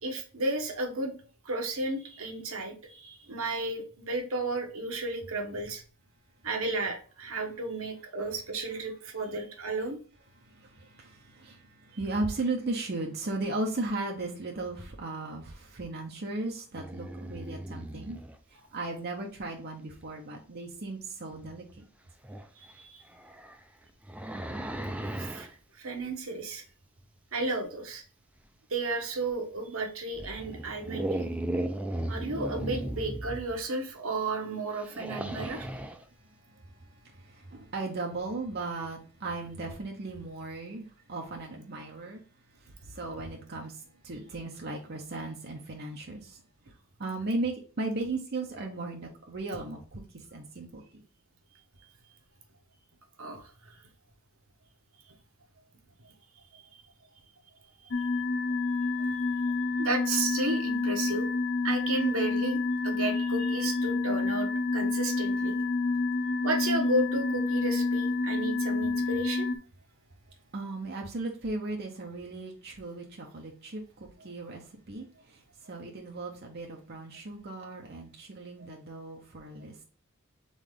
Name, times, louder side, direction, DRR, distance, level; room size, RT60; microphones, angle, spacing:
voice 1, 0.0-1.1 1.4-5.8 6.4-10.0 22.8-23.0 25.2-25.5 25.8-26.6 27.3-28.0 28.7-31.2 32.1-35.6 53.2-53.4 56.5-56.6 59.8-61.3 61.6-65.5 66.4-69.5, right 2 dB, 75° right, 1.1 m, -33 dB
voice 2, 10.4-18.2 18.5-21.8 36.4-42.2 42.5-46.4 47.0-51.0 70.5-79.8, right 2 dB, 50° right, 0.9 m, -37 dB
sound 1, 16.7-18.4 21.3-21.4 22.2-22.5 23.1-25.5 29.3-29.4 30.1-33.6 34.8-36.0, right 1 dB, 5° right, 0.5 m, -36 dB
sound 2, 57.9-69.6, left 3 dB, 60° left, 0.5 m, -28 dB
4.0 x 3.7 x 3.6 m
head